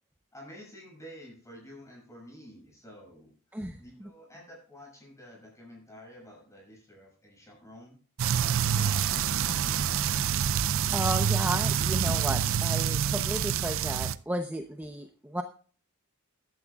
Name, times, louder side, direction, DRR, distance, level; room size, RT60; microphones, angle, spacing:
voice 1, 0.3-8.0 8.3-10.1, equal, 15° left, -1 dB, 7.3 m, -50 dB
sound 1, 8.2-14.2, right 8 dB, 60° right, 0.5 m, -27 dB
voice 2, 10.9-15.4, right 1 dB, 10° right, 6 dB, 0.8 m, -33 dB
15.0 x 12.0 x 2.4 m, 0.42 s
head